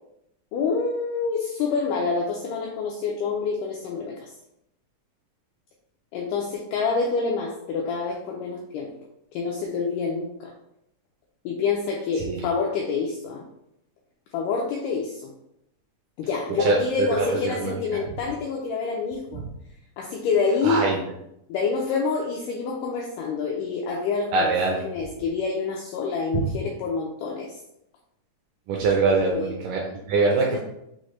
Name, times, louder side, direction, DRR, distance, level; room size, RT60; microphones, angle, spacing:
voice 1, 0.5-4.3 6.1-8.9 9.3-10.5 11.4-13.4 14.3-15.3 16.2-19.4 20.0-20.8 21.5-24.5 24.8-27.6 29.3-29.5, left 5 dB, 85° left, -1 dB, 1.8 m, -27 dB
voice 2, 12.2-12.5 16.6-18.0 19.3-19.5 20.6-21.0 24.3-24.9 26.3-26.5 28.7-30.6, right 3 dB, 80° right, -1 dB, 1.8 m, -24 dB
6.2 x 2.1 x 3.0 m, 0.81 s
omnidirectional pair, 4.1 m